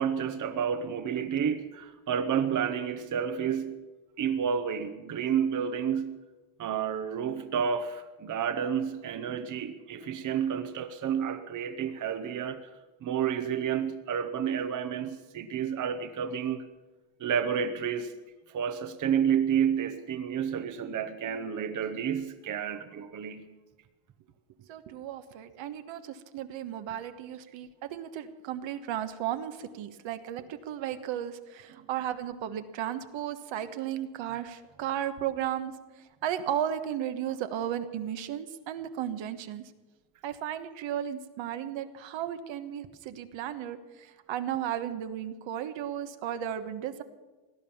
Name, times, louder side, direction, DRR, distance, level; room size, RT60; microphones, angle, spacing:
voice 1, 0.0-3.9 4.2-6.3 6.6-12.7 13.0-16.6 17.2-18.1 18.5-23.5 31.8-31.9, right 8 dB, 40° right, 9 dB, 1.0 m, -30 dB
voice 2, 24.6-39.7 40.2-47.0, right 10 dB, 65° right, 9 dB, 1.3 m, -35 dB
17.5 x 11.0 x 7.1 m, 1.2 s
cardioid pair, 115°, 49 cm